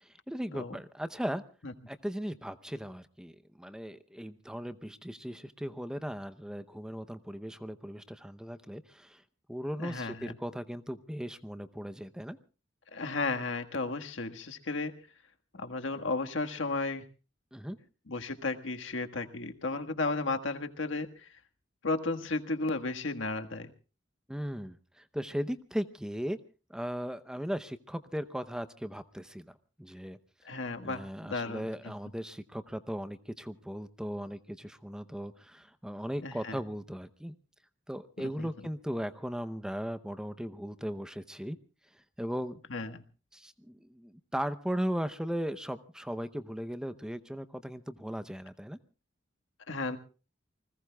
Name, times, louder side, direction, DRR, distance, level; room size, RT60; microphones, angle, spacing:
voice 1, 0.0-1.4 1.9-9.2 9.5-12.4 17.5-17.8 24.3-26.4 26.7-30.2 30.8-37.4 37.9-41.6 42.2-42.6 43.3-48.8, equal, 5° right, 11 dB, 0.7 m, -37 dB
voice 2, 9.8-10.4 12.9-14.9 15.5-17.0 18.1-21.3 21.8-23.7 30.4-31.7 36.2-36.6 38.2-38.5 42.7-43.0 49.7-50.0, left 3 dB, 85° left, 6 dB, 1.6 m, -34 dB
29.0 x 20.0 x 2.3 m, 0.35 s
head